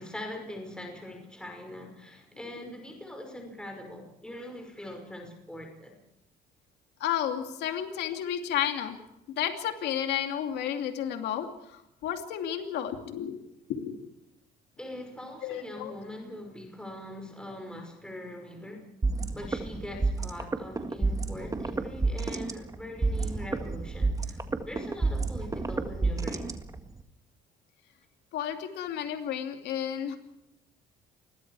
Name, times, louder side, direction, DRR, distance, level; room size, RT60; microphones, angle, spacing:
voice 1, 0.0-6.0 14.8-18.9 19.3-26.5, left 1 dB, 5° left, 3 dB, 5.6 m, -42 dB
voice 2, 7.0-9.0 9.4-13.4 13.7-14.1 15.4-15.9 28.3-30.2, left 10 dB, 80° left, 5 dB, 2.5 m, -32 dB
sound 1, 19.0-27.0, right 3 dB, 20° right, 1.8 m, -30 dB
28.0 x 21.5 x 4.8 m, 0.86 s
cardioid pair, 110°, 17 cm